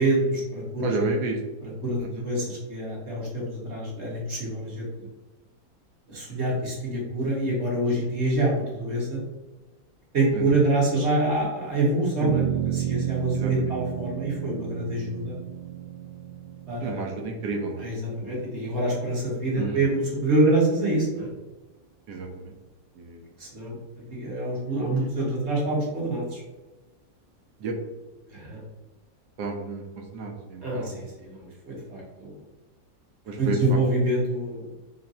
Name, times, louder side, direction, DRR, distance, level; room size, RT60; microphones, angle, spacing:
voice 1, 0.0-0.9 1.6-4.9 6.1-9.2 10.1-15.4 16.7-17.0 17.8-21.3 23.4-23.8 24.1-26.4 28.3-28.6 30.6-32.3 33.4-34.6, right 1 dB, 40° right, -5 dB, 1.4 m, -26 dB
voice 2, 0.8-1.4 2.0-2.2 10.3-10.6 13.4-13.7 16.8-17.9 19.6-19.8 22.1-22.5 23.0-23.2 27.6-27.7 29.4-29.8 30.1-31.0 33.3-33.8, right 3 dB, 70° right, 3 dB, 1.1 m, -31 dB
sound 1, 12.2-18.8, right 11 dB, 90° right, 1.3 m, -31 dB
3.9 x 2.2 x 4.1 m, 1.2 s
omnidirectional pair, 2.0 m